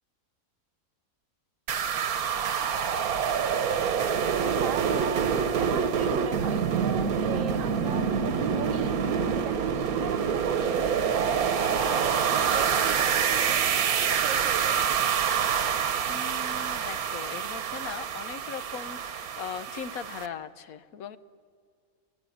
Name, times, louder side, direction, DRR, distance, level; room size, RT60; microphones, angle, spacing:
sound 1, 1.7-20.3, right 7 dB, 85° right, 1.5 m, -26 dB
voice 1, 4.4-9.0 9.4-10.8 11.1-13.6 14.0-15.1, right 7 dB, 65° right, 14 dB, 1.3 m, -39 dB
voice 2, 16.1-21.2, left 7 dB, 75° left, 13 dB, 1.3 m, -39 dB
25.5 x 17.0 x 9.2 m, 2.1 s
omnidirectional pair, 1.5 m